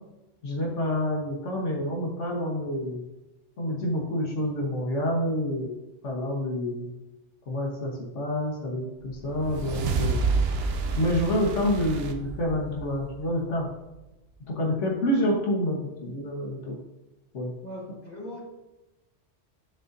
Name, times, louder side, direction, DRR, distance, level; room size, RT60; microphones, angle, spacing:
voice 1, 0.4-3.0 3.6-5.7 6.0-6.9 7.5-10.2 11.0-13.7 14.5-16.8 17.3-17.5, left 1 dB, 75° left, -2 dB, 1.4 m, -28 dB
sound 1, 9.1-13.6, right 4 dB, 60° right, 0.8 m, -29 dB
voice 2, 17.6-18.4, left 1 dB, 35° left, -4 dB, 1.7 m, -39 dB
9.8 x 3.9 x 2.6 m, 0.99 s
omnidirectional pair, 1.2 m